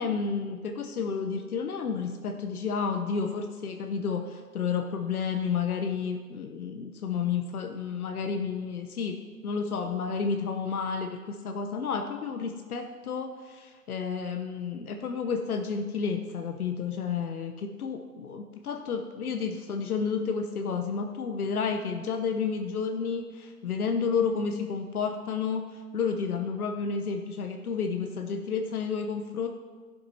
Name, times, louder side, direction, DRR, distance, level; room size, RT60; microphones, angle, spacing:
voice 1, 0.0-9.2 9.4-29.5, left 5 dB, 80° left, 5 dB, 0.9 m, -31 dB
12.5 x 11.0 x 2.8 m, 1.5 s
hypercardioid pair, 135°, 44 cm